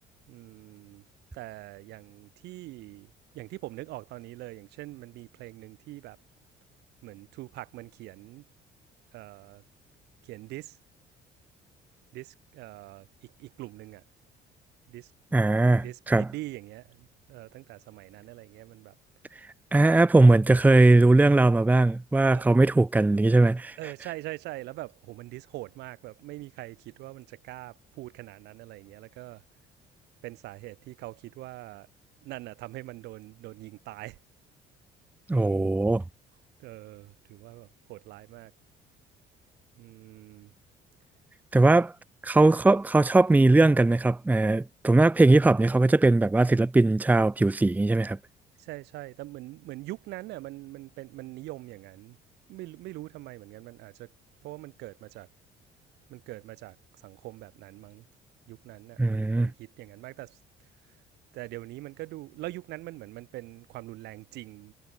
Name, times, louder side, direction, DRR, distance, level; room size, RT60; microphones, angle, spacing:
voice 1, 0.3-1.0 1.3-6.2 7.0-8.4 9.1-9.6 10.2-10.8 12.1-14.0 14.9-15.1 15.8-18.9 22.3-22.4 23.8-29.4 30.2-31.9 32.2-34.2 35.3-35.7 36.6-38.5 39.8-40.5 48.6-52.2 52.5-54.1 54.4-55.3 56.1-58.1 58.5-60.4 61.3-64.7, right 18 dB, 85° right, 4.7 m, -43 dB
voice 2, 15.3-16.3 19.7-23.8 35.3-36.0 41.5-41.9 42.2-48.2 59.0-59.5, right 2 dB, 10° right, 0.8 m, -20 dB
cardioid pair, 110°, 17 cm